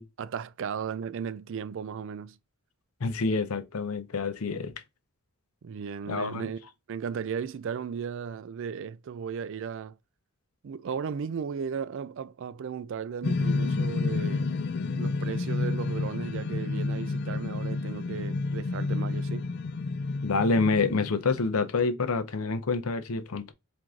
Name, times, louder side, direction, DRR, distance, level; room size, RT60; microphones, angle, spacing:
voice 1, 0.2-2.4 5.6-10.0 10.6-14.5 14.9-19.5, right 6 dB, 60° right, 0.4 m, -35 dB
voice 2, 3.0-4.7 6.1-6.5 20.2-23.5, left 4 dB, 80° left, 0.7 m, -27 dB
sound 1, 13.2-21.7, left 3 dB, 50° left, 0.4 m, -30 dB
4.5 x 2.6 x 3.6 m
head